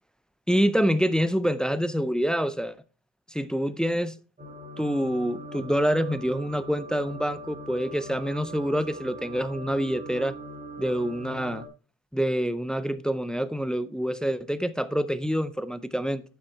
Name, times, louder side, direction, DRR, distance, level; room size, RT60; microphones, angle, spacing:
voice 1, 0.5-2.7 3.3-4.1 4.8-10.3 10.8-11.7 12.1-16.2, equal, ahead, 0.3 m, -26 dB
sound 1, 4.4-11.7, equal, 20° right, 2.1 m, -41 dB
8.4 x 6.3 x 4.4 m
cardioid pair, 135°, 43 cm